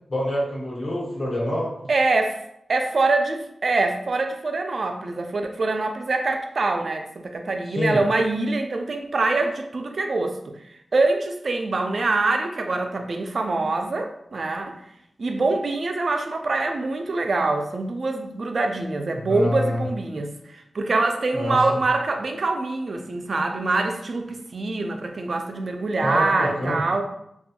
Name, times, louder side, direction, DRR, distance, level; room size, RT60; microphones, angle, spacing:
voice 1, 0.1-1.9 7.6-8.0 19.2-19.8 21.3-21.8 26.0-26.8, left 1 dB, 60° left, -6 dB, 1.1 m, -26 dB
voice 2, 1.9-2.4 2.7-10.4 10.9-14.8 15.2-27.0, right 3 dB, 60° right, 4 dB, 0.3 m, -24 dB
2.5 x 2.2 x 2.8 m, 0.77 s
wide cardioid pair, 80°, 0 cm